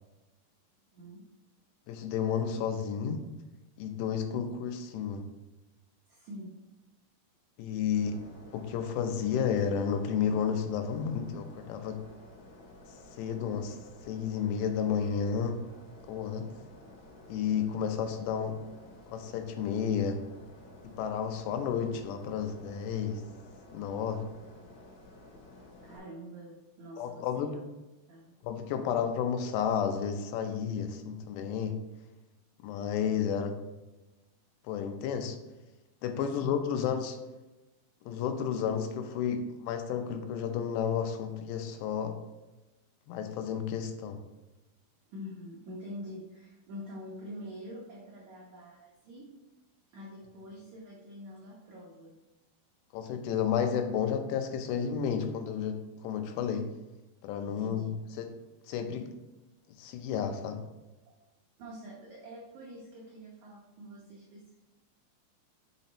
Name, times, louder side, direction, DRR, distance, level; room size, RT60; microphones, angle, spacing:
voice 1, 1.9-3.2 3.8-5.3 7.6-8.2 8.5-12.0 13.2-13.8 14.0-15.6 16.1-16.5 17.3-18.6 19.1-20.2 21.0-23.2 23.7-24.3 27.0-27.5 28.4-31.8 32.6-33.5 34.7-35.4 36.0-37.2 38.0-42.2 43.1-44.2 52.9-56.7 57.2-58.3 58.7-59.1 59.8-60.6, left 7 dB, 90° left, 7 dB, 2.9 m, -31 dB
voice 2, 6.1-6.6 24.5-24.7 25.8-27.6 28.1-28.3 36.4-36.6 45.1-49.3 49.9-52.2 57.5-58.0 59.1-59.2 61.6-64.5, equal, 85° right, -3 dB, 1.6 m, -46 dB
sound 1, 7.9-26.0, left 2 dB, 65° left, 3.0 m, -53 dB
5.8 x 5.4 x 4.0 m, 1.1 s
omnidirectional pair, 4.9 m